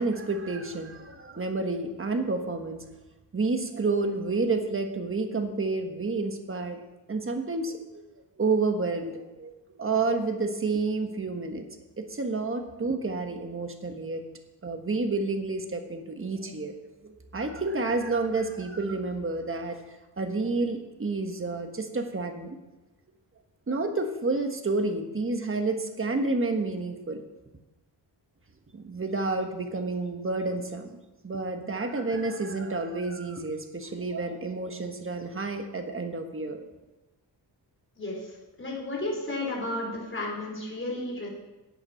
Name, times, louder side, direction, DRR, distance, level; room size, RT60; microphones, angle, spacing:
voice 1, 0.0-2.8 3.3-6.8 7.1-8.0 8.4-9.5 9.8-11.6 12.0-14.2 14.6-19.8 20.2-22.6 23.7-27.2 28.7-31.0 31.2-36.7, right 3 dB, 30° right, 5 dB, 1.4 m, -30 dB
voice 2, 38.0-41.3, left 2 dB, 30° left, -3 dB, 4.3 m, -33 dB
11.0 x 8.6 x 6.4 m, 1.1 s
wide cardioid pair, 130°, 43 cm